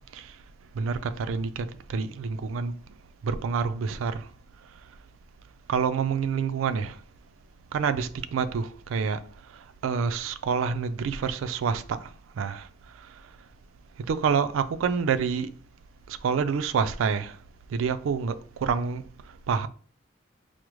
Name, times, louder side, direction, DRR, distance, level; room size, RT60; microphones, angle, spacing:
voice 1, 0.7-1.6 1.9-2.7 3.2-4.3 5.7-7.0 7.7-9.2 9.8-12.1 12.4-12.7 14.1-15.5 16.1-17.4 17.7-19.0 19.5-19.7, right 6 dB, 90° right, 0.3 m, -27 dB
4.8 x 2.0 x 3.0 m
head